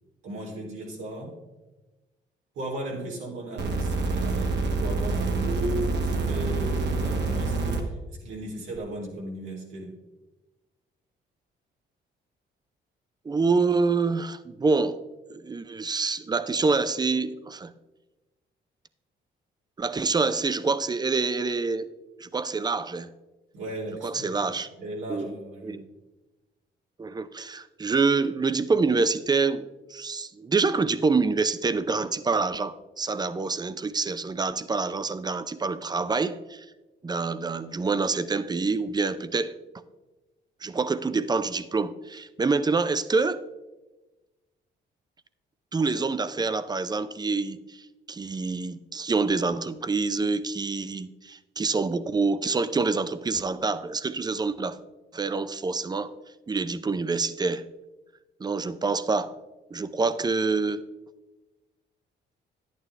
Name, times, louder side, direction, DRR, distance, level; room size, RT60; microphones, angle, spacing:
voice 1, 0.2-1.4 2.5-10.0 23.5-24.5 24.8-25.8, right 1 dB, 85° right, 3.0 m, -36 dB
sound 1, 3.6-7.8 8.8-8.9, right 3 dB, 60° right, 1.4 m, -27 dB
voice 2, 13.2-15.0 15.3-17.7 19.8-21.9 22.2-23.1 24.0-24.7 25.1-25.3 25.6-25.8 27.0-36.7 37.0-39.6 40.6-43.4 45.7-54.8 55.1-56.1 56.5-57.6 58.4-59.4 59.7-60.8, right 4 dB, 20° right, 0.5 m, -26 dB
10.5 x 9.1 x 3.3 m
cardioid pair, 90°, 20 cm